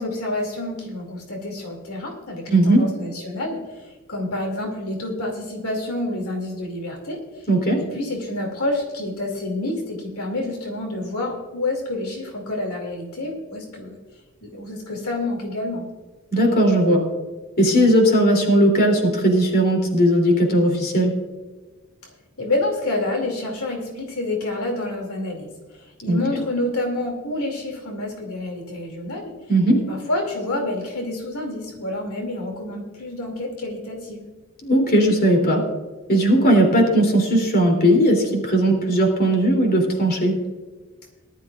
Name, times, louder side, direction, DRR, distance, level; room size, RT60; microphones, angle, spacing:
voice 1, 0.0-7.5 7.8-14.0 14.4-15.8 22.4-29.3 29.9-34.3, left 2 dB, 85° left, 1 dB, 2.6 m, -28 dB
voice 2, 2.5-2.9 7.5-7.8 16.3-17.0 17.6-21.1 26.1-26.2 29.5-29.9 34.6-35.6 36.1-40.4, right 1 dB, 45° left, 1 dB, 3.1 m, -17 dB
19.0 x 12.0 x 2.5 m, 1.3 s
head